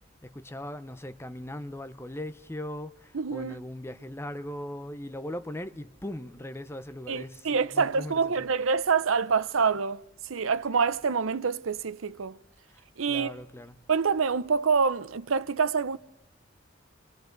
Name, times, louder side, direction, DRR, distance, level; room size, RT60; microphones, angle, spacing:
voice 1, 0.2-8.5 12.7-13.8, left 1 dB, 10° left, 0.7 m, -39 dB
voice 2, 3.1-3.6 7.1-12.4 13.0-13.3 13.9-16.0, right 5 dB, 85° right, 0.7 m, -26 dB
28.5 x 23.0 x 3.9 m
head